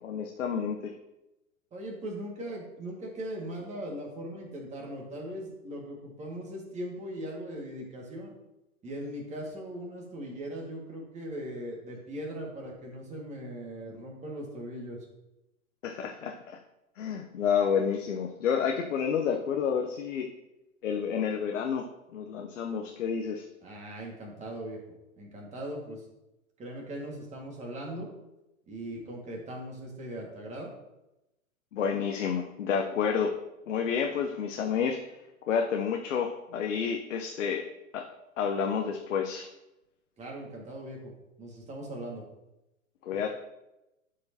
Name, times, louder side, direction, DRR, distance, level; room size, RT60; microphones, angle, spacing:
voice 1, 0.0-0.9 15.8-16.6 17.0-20.3 20.8-21.9 22.1-23.5 31.7-33.3 33.7-35.0 35.5-37.7 37.9-38.1 38.4-39.5 43.0-43.3, left 7 dB, 65° left, 3 dB, 0.9 m, -29 dB
voice 2, 1.7-8.3 8.8-15.0 23.6-24.8 25.2-26.0 26.6-28.1 28.7-30.7 40.2-41.1 41.4-42.2, right 1 dB, 15° right, -1 dB, 1.9 m, -39 dB
11.5 x 4.7 x 2.9 m, 0.94 s
hypercardioid pair, 115°, 41 cm